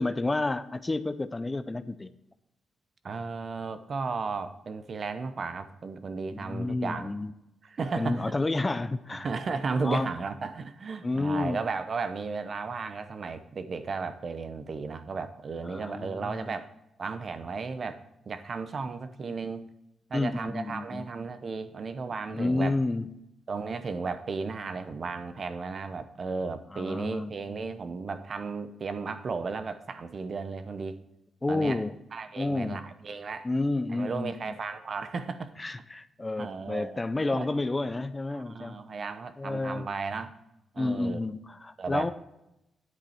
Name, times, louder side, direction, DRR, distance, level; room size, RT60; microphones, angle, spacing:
voice 1, 0.0-2.1 6.3-7.3 8.0-9.3 9.8-10.1 11.0-11.6 15.6-16.5 20.1-21.1 22.3-23.1 26.7-27.3 31.4-31.9 32.4-32.8 33.4-34.5 35.6-38.8 39.4-39.9 40.8-42.1, left 2 dB, 20° left, 12 dB, 0.4 m, -30 dB
voice 2, 3.0-7.1 7.6-8.3 9.1-16.7 17.0-18.0 18.3-19.7 20.1-22.8 23.5-31.0 31.5-31.8 32.1-33.5 33.9-35.5 36.4-37.0 37.3-37.5 38.3-40.3 40.7-41.2 41.8-42.1, right 4 dB, 45° right, 10 dB, 0.8 m, -34 dB
9.6 x 8.1 x 4.3 m, 0.89 s
cardioid pair, 110°, 0 cm